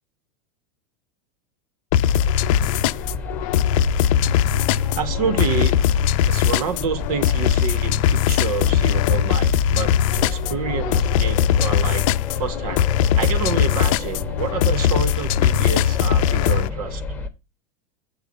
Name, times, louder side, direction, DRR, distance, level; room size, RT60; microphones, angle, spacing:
sound 1, 1.9-16.7, left 10 dB, 55° left, 0.6 m, -20 dB
sound 2, 2.0-17.3, left 4 dB, 10° left, 1.2 m, -30 dB
voice 1, 4.9-5.8 6.2-12.0 12.4-12.9 13.1-17.0, right 6 dB, 70° right, 1.6 m, -28 dB
8.3 x 4.7 x 6.8 m
supercardioid pair, 150°, 20 cm